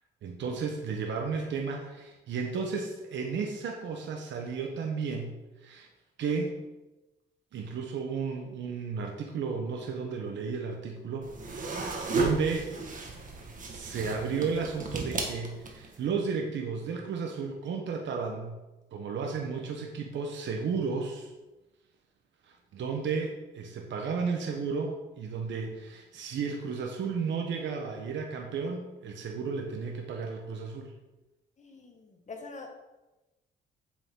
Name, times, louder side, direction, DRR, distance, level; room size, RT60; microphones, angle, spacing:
voice 1, 0.2-5.9 6.2-6.6 7.5-12.7 13.7-18.6 18.9-21.3 22.4-30.9, right 5 dB, 70° right, 2 dB, 1.2 m, -33 dB
sound 1, 11.2-16.0, right 3 dB, 40° right, 1.8 m, -34 dB
voice 2, 31.6-32.7, left 3 dB, 35° left, 2 dB, 1.7 m, -45 dB
8.3 x 7.0 x 3.9 m, 1.0 s
cardioid pair, 90°, 20 cm